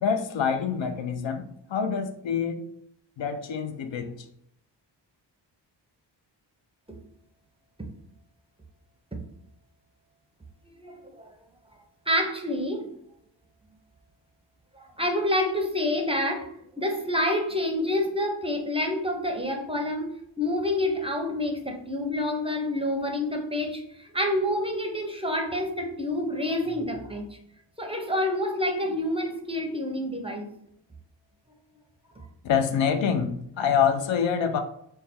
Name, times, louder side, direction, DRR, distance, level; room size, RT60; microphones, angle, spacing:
voice 1, 0.0-2.7 3.2-4.2 32.4-34.6, left 7 dB, 80° left, 0.6 m, -26 dB
voice 2, 10.8-11.3 12.1-12.9 14.8-16.5 16.8-27.2 27.8-30.5 32.2-32.3, left 1 dB, 15° right, 0.5 m, -28 dB
3.3 x 2.2 x 4.2 m
wide cardioid pair, 100°, 44 cm